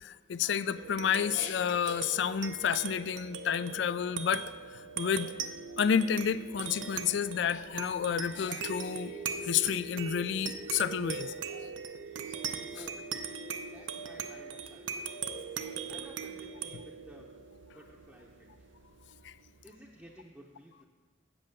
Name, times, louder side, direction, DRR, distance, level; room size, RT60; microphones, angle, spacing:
voice 1, 0.0-5.3 5.8-11.7 12.3-12.4 19.2-19.3, left 8 dB, 70° left, 16 dB, 0.3 m, -30 dB
sound 1, 0.7-19.6, right 6 dB, 80° right, 0.6 m, -40 dB
voice 2, 12.7-13.1 13.7-15.1 15.9-17.3 17.7-18.7 19.6-20.9, equal, 5° right, -4 dB, 0.7 m, -54 dB
7.8 x 6.2 x 7.7 m, 1.5 s
head